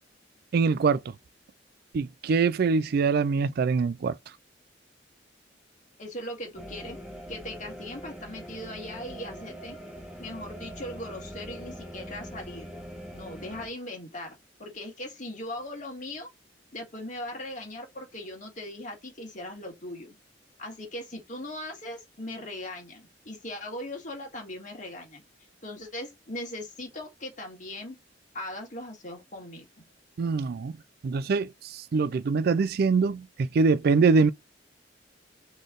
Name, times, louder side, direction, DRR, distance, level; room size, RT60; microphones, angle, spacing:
voice 1, 0.5-1.0 1.9-4.2 30.2-30.7 31.0-34.3, right 4 dB, 55° right, 0.4 m, -24 dB
voice 2, 6.0-7.0 7.3-9.8 10.2-12.7 13.1-16.3 16.7-20.2 20.6-25.2 25.6-28.0 28.3-29.7, left 1 dB, 45° left, 1.8 m, -39 dB
sound 1, 6.6-13.7, equal, 5° right, 1.2 m, -42 dB
4.0 x 3.2 x 3.7 m
head